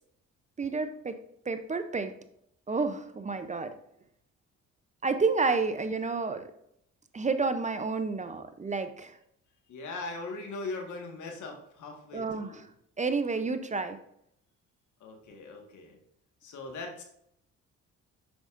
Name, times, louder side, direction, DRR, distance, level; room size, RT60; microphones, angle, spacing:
voice 1, 0.6-1.2 1.5-2.1 2.7-3.8 5.0-6.5 7.1-9.2 12.1-12.6 13.0-14.0, right 4 dB, 25° right, 9 dB, 0.6 m, -30 dB
voice 2, 9.7-12.6 15.0-16.0 16.4-17.0, left 3 dB, 75° left, 2 dB, 1.6 m, -40 dB
7.9 x 6.4 x 2.5 m, 0.73 s
cardioid pair, 90°, 30 cm